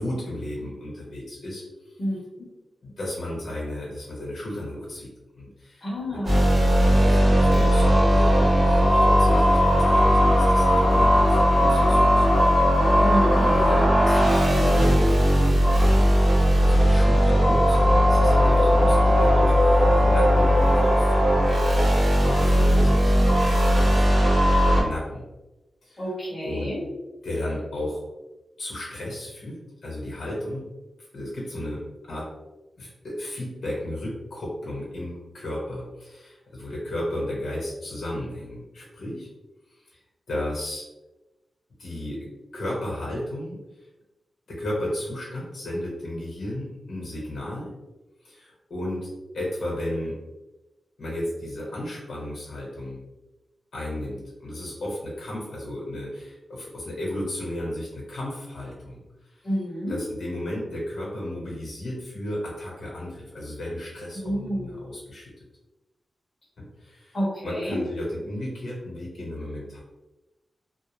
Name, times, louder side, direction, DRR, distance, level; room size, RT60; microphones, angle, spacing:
voice 1, 0.0-2.0 2.8-6.2 6.5-12.4 12.8-13.1 13.4-16.1 16.6-24.2 24.8-25.2 25.8-26.0 26.4-26.7 27.2-28.0 28.6-30.6 31.0-32.3 32.8-39.3 39.7-40.0 40.3-40.8 41.8-43.9 44.5-47.8 48.2-49.1 49.3-50.2 51.0-53.0 53.7-59.5 59.9-65.3 66.6-69.8, left 1 dB, 65° left, -4 dB, 0.9 m, -34 dB
voice 2, 2.0-2.5 5.8-6.4 13.0-13.5 22.3-22.6 26.0-26.8 59.4-60.0 64.1-64.8 67.1-67.8, equal, 30° left, -7 dB, 0.7 m, -30 dB
sound 1, 6.2-24.8, equal, 55° right, 1.0 m, -18 dB
2.4 x 2.0 x 3.0 m, 1.0 s
wide cardioid pair, 180°, 0 cm